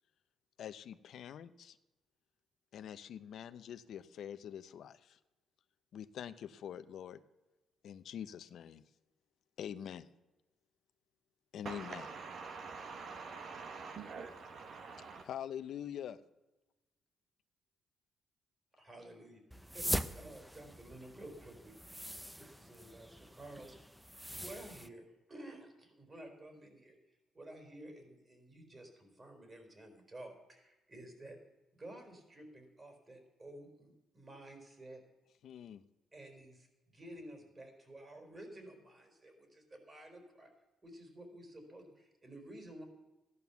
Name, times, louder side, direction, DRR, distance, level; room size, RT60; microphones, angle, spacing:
voice 1, 0.6-1.8 2.7-5.2 5.9-7.2 7.8-8.8 9.6-10.1 11.5-12.1 15.2-16.2 35.4-35.8, left 9 dB, 70° left, 0.7 m, -45 dB
voice 2, 11.6-15.3, right 4 dB, 60° right, 1.3 m, -46 dB
voice 3, 18.7-19.9 20.1-21.8 22.4-23.8 24.4-31.4 31.7-35.0 36.1-40.5 40.8-42.8, right 1 dB, 30° right, 4.2 m, -52 dB
sound 1, 19.5-24.9, equal, ahead, 0.7 m, -42 dB
15.0 x 11.0 x 7.1 m
cardioid pair, 90°, 0 cm